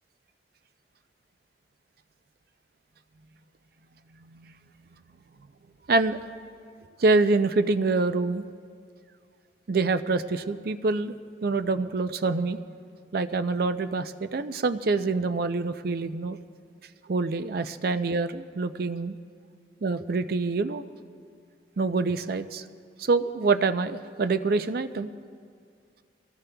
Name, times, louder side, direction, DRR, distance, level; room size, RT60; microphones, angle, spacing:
voice 1, 4.2-4.6 4.9-5.0 5.9-6.2 7.0-8.4 9.7-11.2 11.4-12.6 13.1-16.4 17.1-19.2 19.8-20.8 21.8-22.6 23.0-25.1, right 3 dB, 55° right, 11 dB, 0.5 m, -26 dB
25.5 x 17.0 x 2.3 m, 2.2 s
head